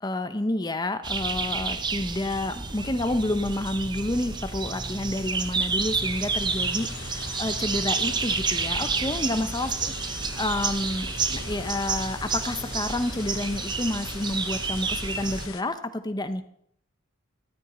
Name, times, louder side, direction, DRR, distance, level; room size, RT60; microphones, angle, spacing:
voice 1, 0.0-9.9 10.4-16.4, left 1 dB, 20° left, 10 dB, 0.7 m, -29 dB
sound 1, 1.0-15.5, right 4 dB, 20° right, 0.6 m, -30 dB
sound 2, 2.7-2.8 3.0-15.6, left 6 dB, 75° left, 1.0 m, -43 dB
13.0 x 12.5 x 4.3 m, 0.68 s
head